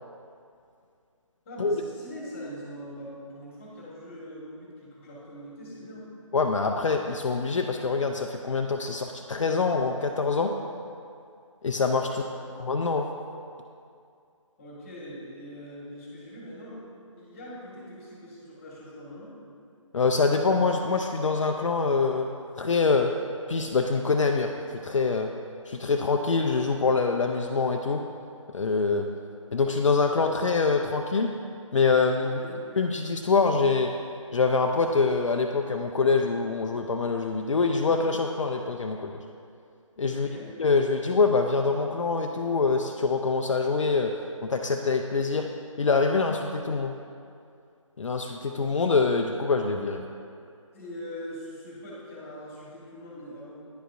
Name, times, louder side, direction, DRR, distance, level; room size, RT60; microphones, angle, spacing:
voice 1, 1.4-6.1 12.0-12.5 14.6-16.9 17.1-19.3 32.2-32.7 40.1-40.5 50.7-53.6, equal, 25° left, -5 dB, 1.5 m, -42 dB
voice 2, 6.3-10.5 11.6-12.1 12.6-13.1 19.9-22.3 22.6-23.1 23.5-24.5 24.8-25.3 25.7-28.0 28.5-29.1 29.5-31.3 31.7-32.4 32.8-33.9 34.3-39.2 40.0-40.3 40.6-45.5 45.8-46.9 48.0-50.0, left 4 dB, 65° left, 3 dB, 0.4 m, -25 dB
10.0 x 5.1 x 2.6 m, 2.4 s
figure-of-eight pair, 150°, 17 cm